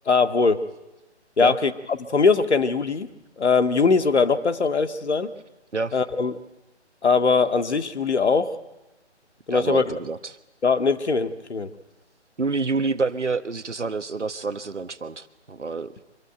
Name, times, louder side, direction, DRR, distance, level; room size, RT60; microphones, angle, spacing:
voice 1, 0.1-0.6 1.4-3.1 3.4-5.3 5.9-6.3 7.0-8.5 9.5-10.0 10.6-11.7, left 4 dB, 70° left, 10 dB, 2.0 m, -21 dB
voice 2, 9.5-10.2 12.4-15.9, right 4 dB, 85° right, 12 dB, 1.5 m, -27 dB
25.0 x 23.5 x 9.1 m, 1.0 s
figure-of-eight pair, 145°, 35 cm